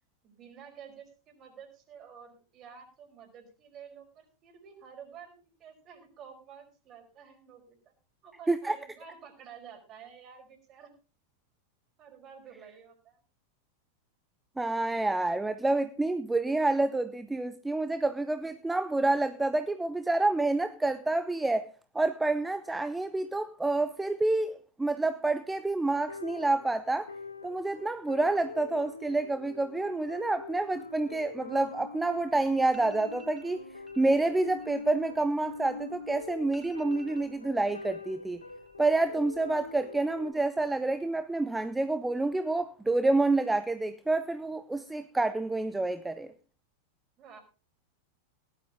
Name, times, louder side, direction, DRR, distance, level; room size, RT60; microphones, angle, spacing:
voice 1, 0.2-7.9 8.2-10.9 12.0-13.2 39.1-39.2 47.2-47.4, right 7 dB, 30° right, 5.0 m, -50 dB
voice 2, 14.6-21.7 21.9-27.1 27.4-33.6 34.0-38.4 38.8-46.3, right 2 dB, 5° right, 0.6 m, -28 dB
sound 1, 25.8-40.3, left 4 dB, 80° left, 1.1 m, -44 dB
sound 2, 32.2-32.3 32.7-33.5 33.9-34.2 34.5-36.0 36.2-36.3 36.5-38.0 38.3-38.9 39.2-39.7, right 1 dB, 10° left, 4.2 m, -56 dB
17.5 x 11.5 x 3.6 m
figure-of-eight pair, 90°, 0 cm